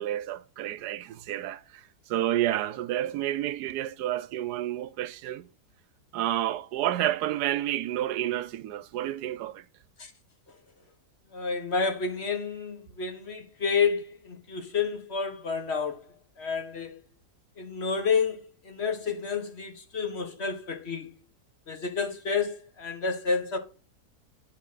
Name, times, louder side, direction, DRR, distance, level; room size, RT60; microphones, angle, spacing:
voice 1, 0.0-5.5 6.1-9.6, right 13 dB, 80° right, 1.1 m, -30 dB
voice 2, 11.3-16.0 16.4-17.0 17.6-18.4 18.6-21.1 21.7-23.6, left 5 dB, 45° left, 1.2 m, -30 dB
10.0 x 4.3 x 3.9 m
omnidirectional pair, 1.7 m